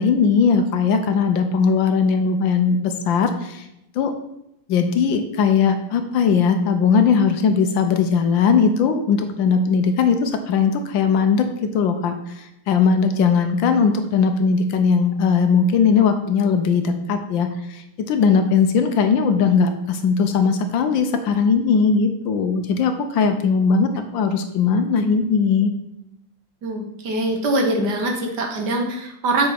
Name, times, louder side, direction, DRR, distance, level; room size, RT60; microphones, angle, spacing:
voice 1, 0.0-3.7 3.9-4.1 4.7-25.7, left 5 dB, 70° left, 7 dB, 1.3 m, -19 dB
voice 2, 26.6-29.5, right 2 dB, 55° right, 2 dB, 1.5 m, -23 dB
7.6 x 4.0 x 5.8 m, 0.83 s
omnidirectional pair, 2.3 m